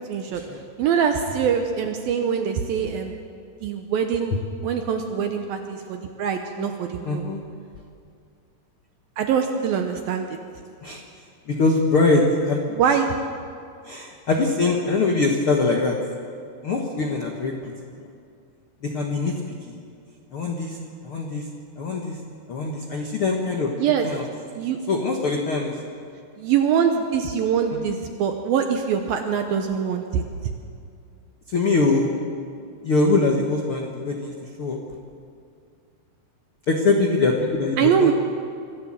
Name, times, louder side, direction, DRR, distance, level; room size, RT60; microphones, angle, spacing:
voice 1, 0.1-0.4 0.8-3.2 3.6-4.3 4.6-7.3 9.2-10.4 12.8-13.1 23.8-24.1 24.6-24.8 26.4-30.2 37.8-38.1, right 7 dB, 75° right, 5 dB, 2.4 m, -23 dB
voice 2, 7.0-7.4 10.8-11.0 11.5-12.6 12.9-13.0 13.8-16.0 16.6-17.7 18.0-18.1 18.8-19.3 20.3-20.8 21.0-21.5 21.8-22.2 22.5-23.7 24.0-24.3 24.9-25.8 27.7-28.0 31.5-32.1 32.8-34.8 36.7-38.1, left 3 dB, 80° left, 1 dB, 1.2 m, -23 dB
25.0 x 14.5 x 7.5 m, 2.4 s
omnidirectional pair, 4.9 m